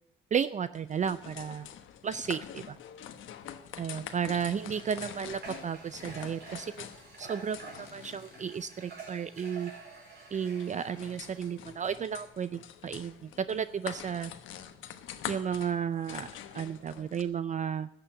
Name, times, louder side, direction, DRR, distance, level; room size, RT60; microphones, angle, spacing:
voice 1, 0.3-1.7 2.0-2.8 3.8-6.9 7.2-9.7 10.3-14.3 15.3-17.9, right 7 dB, 40° right, 14 dB, 0.5 m, -33 dB
sound 1, 0.7-17.2, left 10 dB, 80° left, 1.1 m, -46 dB
Water / Water tap faucet, 4.1-11.6, right 4 dB, 55° right, 4.8 m, -49 dB
13.5 x 6.9 x 8.8 m, 0.80 s
cardioid pair, 90°, 20 cm